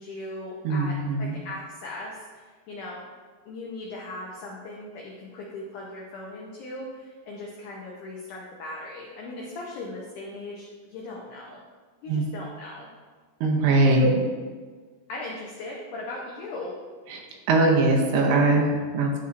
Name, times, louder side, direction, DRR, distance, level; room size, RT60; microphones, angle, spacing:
voice 1, 0.0-3.1 3.5-11.6 12.0-12.9 14.0-14.1 15.1-16.7, left 2 dB, 85° left, -3 dB, 1.7 m, -38 dB
voice 2, 0.6-1.4 12.1-12.2 13.4-14.1 17.1-17.2 17.5-19.2, right 2 dB, 80° right, 1 dB, 2.8 m, -21 dB
11.5 x 4.2 x 2.5 m, 1.5 s
omnidirectional pair, 4.6 m